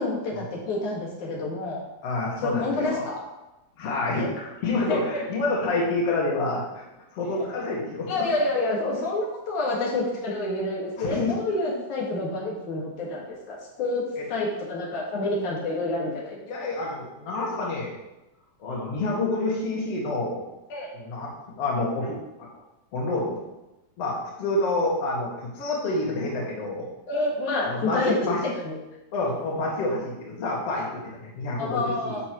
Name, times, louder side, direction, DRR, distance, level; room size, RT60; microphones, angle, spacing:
voice 1, 0.0-1.8 2.4-3.2 4.1-4.3 4.9-5.0 8.1-14.0 14.3-16.7 20.7-20.9 27.1-28.1 28.6-28.8 31.6-32.2, left 2 dB, 85° left, -3 dB, 3.3 m, -28 dB
voice 2, 2.0-3.0 3.8-4.3 4.6-6.8 7.1-8.2 11.0-11.3 14.2-14.3 16.5-18.0 18.6-20.4 20.9-22.5 22.9-23.4 24.0-26.9 27.6-28.4 29.1-32.2, left 2 dB, 55° left, -3 dB, 2.8 m, -28 dB
11.5 x 7.0 x 3.1 m, 0.96 s
omnidirectional pair, 3.3 m